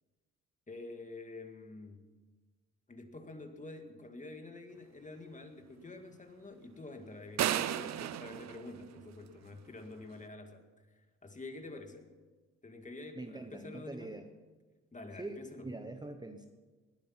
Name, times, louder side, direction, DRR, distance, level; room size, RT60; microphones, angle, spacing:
voice 1, 0.7-2.0 2.9-10.6 10.9-12.1 12.6-14.2 14.9-15.7, left 2 dB, 25° left, 5 dB, 2.0 m, -48 dB
sound 1, 7.4-9.5, right 11 dB, 65° right, 0.7 m, -34 dB
voice 2, 13.1-14.3 15.2-16.5, right 2 dB, 15° right, 6 dB, 1.1 m, -44 dB
20.0 x 10.0 x 5.9 m, 1.3 s
cardioid pair, 90°, 30 cm